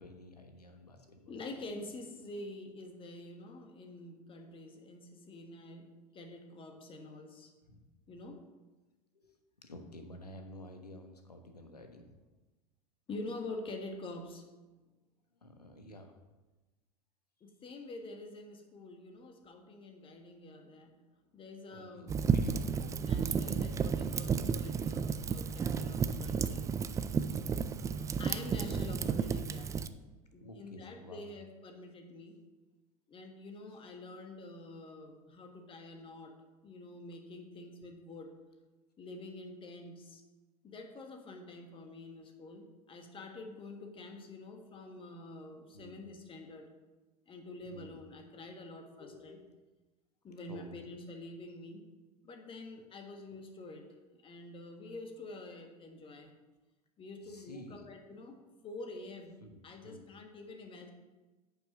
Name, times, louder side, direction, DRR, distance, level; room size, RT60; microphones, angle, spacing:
voice 1, 0.0-1.3 4.5-4.6 7.7-7.8 8.2-8.4 9.1-9.3 9.6-12.2 15.4-16.2 21.7-23.0 25.5-25.8 27.8-28.2 30.4-31.3 45.7-46.0 47.6-48.0 48.7-49.6 50.5-50.9 57.2-57.8 59.4-59.5 59.8-60.1, left 1 dB, 85° left, 5 dB, 1.2 m, -51 dB
voice 2, 1.3-7.5 8.1-8.4 13.1-14.5 17.4-20.9 21.3-22.2 22.6-26.7 28.2-29.8 30.3-32.4 33.1-36.3 36.6-38.3 39.0-40.2 40.6-46.7 47.3-49.4 50.2-51.8 52.2-56.3 57.0-59.3 59.6-60.9, left 2 dB, 25° left, 4 dB, 1.6 m, -47 dB
Fire, 22.1-29.9, right 6 dB, 15° right, 0.4 m, -32 dB
8.9 x 5.7 x 6.2 m, 1.2 s
figure-of-eight pair, 80°, 20 cm